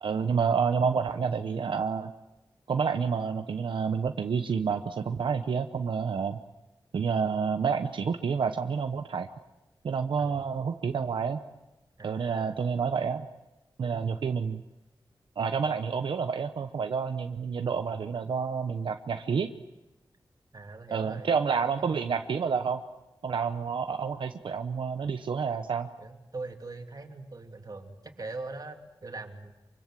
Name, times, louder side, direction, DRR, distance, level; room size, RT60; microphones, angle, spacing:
voice 1, 0.0-2.1 2.7-6.4 6.9-9.3 9.8-11.4 12.0-13.3 13.8-14.6 15.4-19.5 20.9-22.8 23.2-25.9, right 6 dB, 90° right, 7 dB, 0.9 m, -29 dB
voice 2, 12.0-12.6 13.9-14.0 17.7-17.9 20.5-21.3 21.8-22.0 26.0-29.5, right 3 dB, 50° right, 3 dB, 3.1 m, -42 dB
25.0 x 24.5 x 7.6 m, 1.0 s
wide cardioid pair, 70°, 8 cm